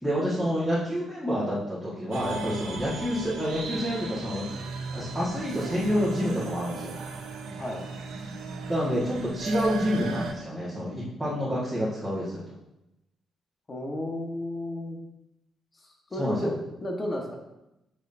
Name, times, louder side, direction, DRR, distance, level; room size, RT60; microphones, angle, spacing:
voice 1, 0.0-4.6 4.9-7.0 8.7-12.4 16.2-16.5, equal, ahead, -10 dB, 1.9 m, -28 dB
sound 1, 2.1-10.3, right 4 dB, 85° right, 1.0 m, -36 dB
voice 2, 13.7-15.0 16.1-16.5 16.8-17.3, left 1 dB, 30° left, 1 dB, 1.4 m, -32 dB
8.1 x 6.1 x 2.8 m, 0.91 s
cardioid pair, 90°, 0 cm